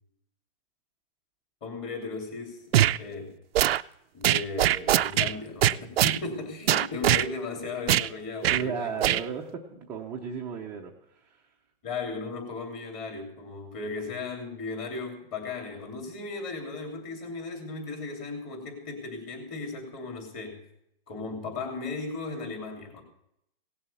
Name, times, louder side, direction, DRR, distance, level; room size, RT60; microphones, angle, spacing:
voice 1, 1.6-3.3 4.1-9.1 11.8-20.6 21.1-23.0, left 3 dB, 25° left, 1 dB, 3.0 m, -36 dB
sound 1, 2.7-3.0 3.5-3.8 4.2-5.3 5.6-6.2 6.7-7.3 7.9-8.1 8.4-8.6 9.0-9.2, right 12 dB, 90° right, 0.5 m, -22 dB
voice 2, 8.5-10.9 11.2-11.4, right 6 dB, 5° right, -3 dB, 0.5 m, -34 dB
17.5 x 7.2 x 6.9 m, 0.75 s
hypercardioid pair, 165°, 29 cm